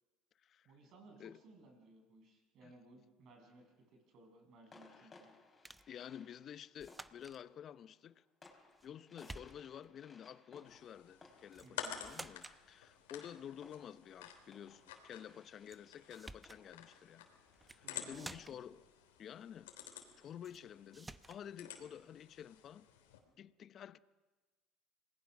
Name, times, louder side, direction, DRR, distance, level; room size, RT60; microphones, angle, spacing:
voice 1, 0.6-5.3 11.6-12.0 17.8-18.6, right 2 dB, 60° right, 6.9 m, -60 dB
sound 1, 3.2-3.8 4.7-18.1, left 3 dB, 25° left, 5.0 m, -64 dB
sound 2, 5.6-5.9 6.8-7.4 8.4-8.9 9.2-9.9 11.5-11.7 12.0-12.6 15.7-15.8 16.1-16.6 17.5-17.8 18.1-18.7 20.4-20.6 20.9-21.4, right 2 dB, 15° right, 0.8 m, -52 dB
voice 2, 5.9-8.2 8.8-17.3 17.7-18.8 19.2-22.9 23.4-24.0, left 9 dB, 50° left, 0.8 m, -51 dB
sound 3, 10.7-23.2, left 9 dB, 90° left, 3.2 m, -52 dB
27.0 x 20.0 x 6.1 m
hypercardioid pair, 80°, 0 cm